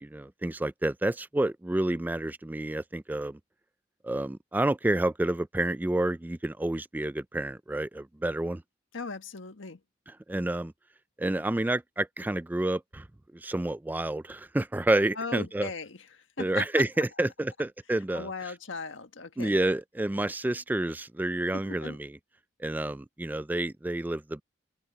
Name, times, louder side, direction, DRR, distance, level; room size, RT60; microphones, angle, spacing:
voice 1, 0.1-3.4 4.0-8.6 10.3-10.7 11.2-13.1 13.3-15.7 16.4-18.3 19.4-22.2 22.6-24.4, right 1 dB, 10° right, 0.3 m, -29 dB
voice 2, 8.9-9.8 15.1-16.8 18.1-19.5 21.5-22.0, left 4 dB, 90° left, 1.5 m, -38 dB
open air
head